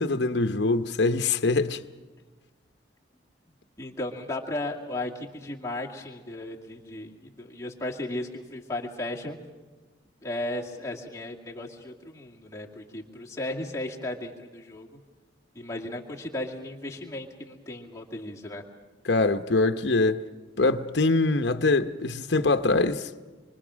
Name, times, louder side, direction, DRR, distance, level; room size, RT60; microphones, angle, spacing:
voice 1, 0.0-1.8 19.0-20.2 20.6-23.1, left 3 dB, 70° left, 0.9 m, -23 dB
voice 2, 3.8-9.4 10.2-15.0 15.5-18.6, left 1 dB, 15° left, 2.2 m, -35 dB
26.5 x 24.0 x 6.3 m
head